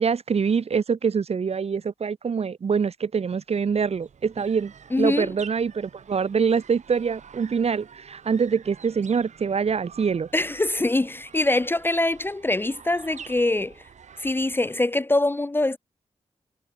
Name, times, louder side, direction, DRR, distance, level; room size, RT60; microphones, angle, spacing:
voice 1, 0.0-10.3, right 6 dB, 60° right, 1.7 m, -25 dB
sound 1, 3.5-15.0, right 7 dB, 80° right, 4.5 m, -49 dB
voice 2, 4.9-5.3 10.3-13.7 14.2-15.8, left 2 dB, 20° left, 0.6 m, -23 dB
wide cardioid pair, 95°, 12 cm